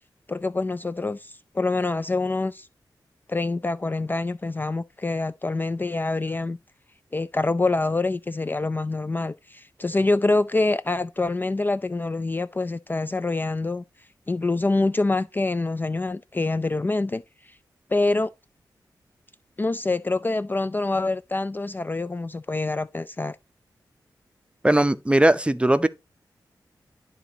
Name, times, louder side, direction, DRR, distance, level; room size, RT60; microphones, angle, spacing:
voice 1, 0.3-2.7 3.3-6.6 7.1-13.8 14.3-17.6 17.9-18.3 19.6-23.4, left 2 dB, 25° left, 0.3 m, -26 dB
voice 2, 24.6-25.9, right 1 dB, 15° right, 0.6 m, -19 dB
12.0 x 4.0 x 2.8 m
cardioid pair, 60°, 8 cm